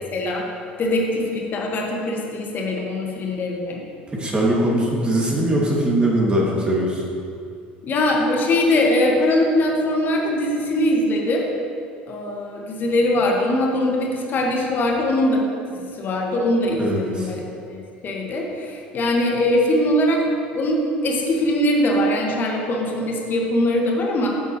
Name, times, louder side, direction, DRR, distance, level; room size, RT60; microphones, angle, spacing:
voice 1, 0.1-0.5 0.8-3.8 7.8-11.5 12.1-15.4 16.0-20.3 20.5-24.3, left 1 dB, 35° left, -1 dB, 1.8 m, -21 dB
voice 2, 4.1-7.0 16.8-17.3, right 1 dB, 20° right, -3 dB, 2.5 m, -21 dB
15.5 x 7.9 x 3.2 m, 2.4 s
figure-of-eight pair, 65°, 5 cm